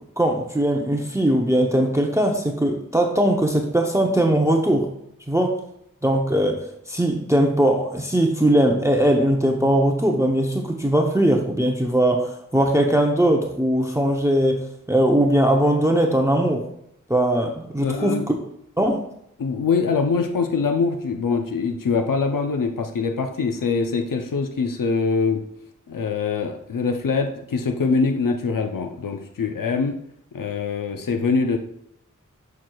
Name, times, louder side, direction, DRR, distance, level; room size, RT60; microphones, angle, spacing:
voice 1, 0.2-4.9 5.3-5.6 6.0-16.6 17.1-18.2 18.8-19.0, right 1 dB, 10° right, 2 dB, 0.7 m, -20 dB
voice 2, 17.8-18.3 19.4-25.4 25.9-30.0 30.3-31.6, left 4 dB, 85° left, 5 dB, 0.6 m, -23 dB
7.4 x 6.1 x 2.3 m, 0.73 s
wide cardioid pair, 70°, 32 cm